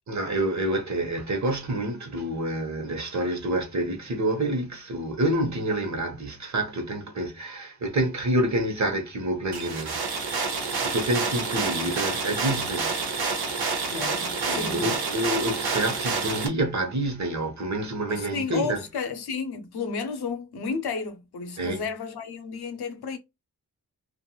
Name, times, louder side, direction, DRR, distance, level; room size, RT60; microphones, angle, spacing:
voice 1, 0.1-12.9 14.5-18.8 21.6-21.8, right 1 dB, 45° right, 1.0 m, -28 dB
sound 1, 9.5-16.5, right 4 dB, 80° right, 0.8 m, -28 dB
voice 2, 13.9-14.9 18.1-23.2, left 5 dB, 90° left, 0.6 m, -32 dB
2.9 x 2.5 x 2.3 m
cardioid pair, 55°, 38 cm